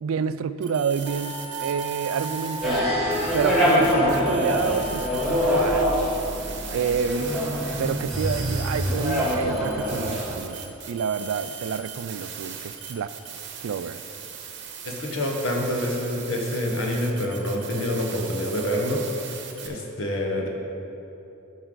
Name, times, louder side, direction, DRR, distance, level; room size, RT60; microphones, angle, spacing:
voice 1, 0.0-2.9 3.3-5.9 6.2-6.3 6.7-7.3 7.8-13.1 13.6-14.0, right 6 dB, 80° right, 13 dB, 0.3 m, -29 dB
sound 1, 0.6-2.8 3.1-19.7, right 7 dB, 55° right, 0.9 m, -38 dB
Wind instrument woodwind instrument, 1.1-6.0, right 2 dB, 35° left, 1.5 m, -36 dB
sound 2, 2.6-10.3, equal, ahead, 1.9 m, -24 dB
voice 2, 14.8-19.0 19.6-20.5, left 1 dB, 70° left, 0 dB, 1.3 m, -27 dB
12.5 x 5.6 x 3.9 m, 2.9 s
head